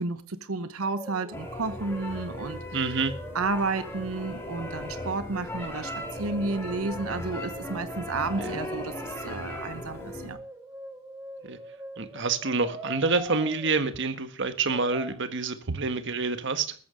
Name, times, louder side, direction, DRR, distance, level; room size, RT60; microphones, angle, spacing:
voice 1, 0.0-2.8 3.3-10.4 15.7-15.8, right 3 dB, 85° right, 1.0 m, -32 dB
Brass instrument, 0.8-1.5 1.8-4.3 5.3-8.5 9.9-13.7 14.7-15.1, right 1 dB, 15° right, 3.2 m, -43 dB
sound 1, 1.3-10.3, left 1 dB, 10° left, 4.6 m, -37 dB
voice 2, 2.7-3.1 8.4-8.5 11.4-11.6 12.0-16.7, right 4 dB, 60° right, 1.5 m, -27 dB
14.0 x 14.0 x 5.2 m
head